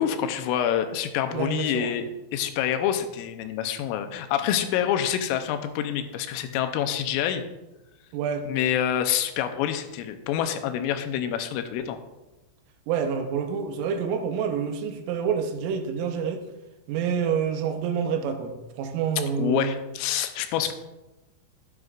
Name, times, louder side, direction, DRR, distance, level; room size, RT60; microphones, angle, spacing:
voice 1, 0.0-2.1 2.3-7.4 8.5-12.0 19.4-20.7, left 10 dB, 90° left, 7 dB, 3.3 m, -27 dB
voice 2, 1.3-2.0 8.1-8.5 12.9-16.4 16.9-19.7, right 7 dB, 85° right, 6 dB, 3.5 m, -27 dB
13.0 x 9.4 x 2.5 m, 1.0 s
omnidirectional pair, 5.6 m